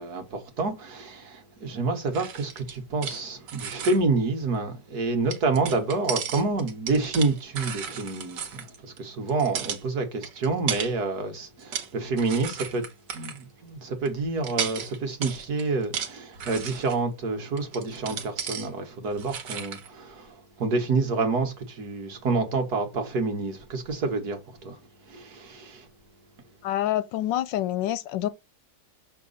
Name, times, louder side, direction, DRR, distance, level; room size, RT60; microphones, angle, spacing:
voice 1, 0.0-12.9 13.1-24.8 25.1-25.9, right 3 dB, 60° right, 1.9 m, -28 dB
sound 1, 2.1-3.2 3.5-4.0 5.3-9.0 9.3-9.8 10.2-10.9 11.4-11.9 12.2-13.4 14.1-14.2 14.4-17.0 17.6-18.7 19.1-19.9, right 7 dB, 75° right, 1.8 m, -34 dB
voice 2, 26.6-28.3, left 13 dB, 85° left, 1.3 m, -27 dB
6.6 x 3.7 x 5.5 m
omnidirectional pair, 1.9 m